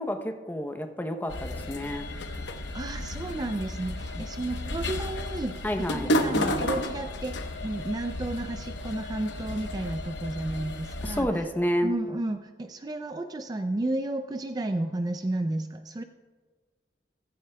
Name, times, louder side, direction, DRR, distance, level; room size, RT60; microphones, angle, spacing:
voice 1, 0.0-2.1 5.6-6.1 11.0-12.0, equal, 10° left, 6 dB, 0.7 m, -30 dB
sound 1, 1.3-11.2, left 1 dB, 80° left, 1.0 m, -32 dB
voice 2, 2.7-11.3 11.8-16.0, right 2 dB, 20° right, 8 dB, 0.3 m, -32 dB
15.0 x 15.0 x 2.2 m, 1.4 s
head